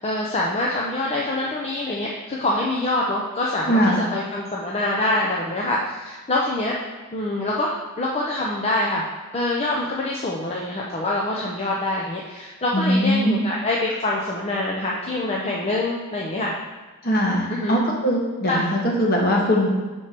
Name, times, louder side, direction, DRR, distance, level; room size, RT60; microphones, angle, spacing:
voice 1, 0.0-6.7 7.1-9.0 9.3-16.5 17.5-17.8 18.5-18.6, left 2 dB, 30° left, -3 dB, 0.6 m, -25 dB
voice 2, 3.7-4.0 12.7-13.3 17.0-19.7, equal, 45° left, -2 dB, 1.4 m, -21 dB
4.7 x 4.4 x 5.8 m, 1.3 s
head